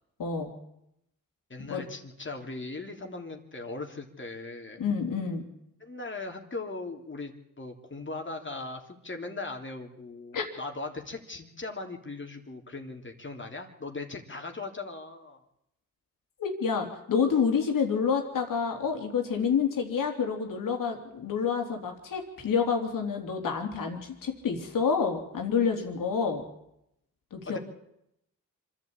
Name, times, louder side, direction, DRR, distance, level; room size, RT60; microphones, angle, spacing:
voice 1, 0.2-0.5 1.7-1.8 4.8-5.4 10.3-10.4 16.4-26.4 27.3-27.6, left 6 dB, 75° left, 3 dB, 3.6 m, -28 dB
voice 2, 1.5-4.8 5.8-15.4 27.5-27.6, left 3 dB, 35° left, 3 dB, 3.0 m, -39 dB
25.5 x 11.5 x 8.8 m, 0.81 s
cardioid pair, 55°, 32 cm